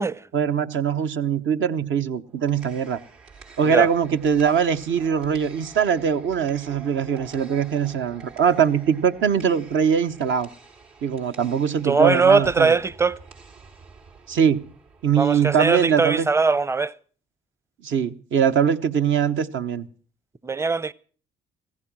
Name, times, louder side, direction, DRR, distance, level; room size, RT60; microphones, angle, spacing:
voice 1, 0.3-3.0 3.6-10.5 11.0-12.7 14.3-14.6 15.0-16.3 17.8-19.9, right 7 dB, 65° right, 1.0 m, -22 dB
sound 1, 2.3-16.2, right 5 dB, 85° right, 4.8 m, -48 dB
voice 2, 11.8-13.2 15.2-16.9 20.4-20.9, right 4 dB, 15° right, 0.7 m, -20 dB
15.5 x 14.5 x 6.1 m
supercardioid pair, 65°, 21 cm